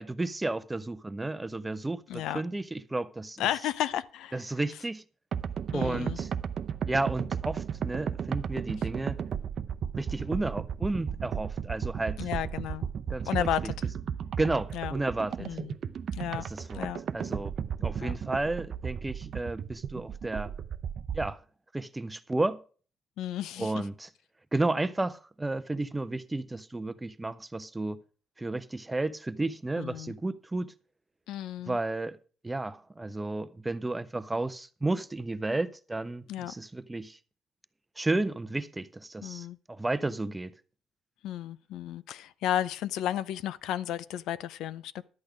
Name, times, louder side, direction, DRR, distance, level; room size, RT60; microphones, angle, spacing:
voice 1, 0.0-3.4 4.3-5.0 5.7-6.3 6.9-9.2 10.0-12.3 13.1-13.3 14.4-15.5 16.3-16.9 17.1-17.5 17.8-20.5 21.1-21.4 21.7-22.6 23.6-24.1 24.5-28.0 28.4-30.7 31.7-32.2 32.4-37.2 38.0-40.5, right 2 dB, 10° right, 0.6 m, -32 dB
voice 2, 2.1-2.4 3.4-4.4 5.7-6.2 12.2-12.9 13.3-13.9 14.7-15.0 15.4-15.8 16.1-16.5 16.7-17.0 18.0-18.2 23.2-23.8 29.8-30.1 31.3-31.8 36.3-36.5 39.2-39.6 41.2-45.0, left 11 dB, 80° left, 0.6 m, -33 dB
sound 1, 5.3-21.3, right 7 dB, 50° right, 0.7 m, -34 dB
12.0 x 8.5 x 5.0 m
cardioid pair, 120°, 0 cm